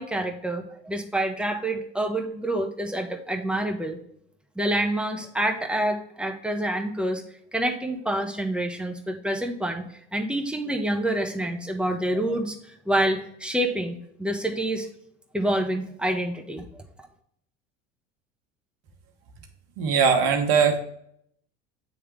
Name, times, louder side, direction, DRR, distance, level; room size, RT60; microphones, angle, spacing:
voice 1, 0.0-4.0 4.6-7.2 7.5-9.8 10.1-12.6 12.9-14.9 15.3-16.6, right 1 dB, 5° right, 3 dB, 1.2 m, -27 dB
voice 2, 19.8-20.8, right 6 dB, 70° right, 5 dB, 1.1 m, -20 dB
9.1 x 3.3 x 3.3 m, 0.69 s
hypercardioid pair, 70°, 30 cm